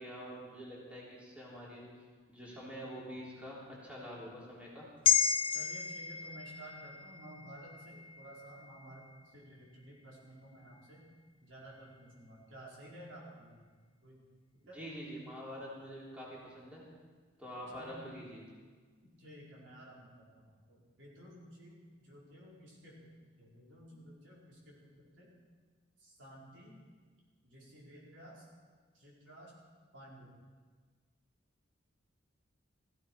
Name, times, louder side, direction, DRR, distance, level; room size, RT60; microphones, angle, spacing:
voice 1, 0.0-1.8 2.3-4.8 14.7-16.8 17.4-18.4, equal, 5° right, -6 dB, 3.4 m, -46 dB
sound 1, 5.0-9.5 9.9-10.1, left 7 dB, 25° left, 0.5 m, -34 dB
voice 2, 5.5-11.1 11.4-13.6 14.0-14.2 14.5-14.8 17.7-18.0 19.0-23.1 23.4-25.3 26.0-26.8 27.4-28.5 28.9-29.5 29.9-30.4, right 1 dB, 65° right, -5 dB, 4.7 m, -53 dB
16.0 x 15.0 x 4.7 m, 1.5 s
head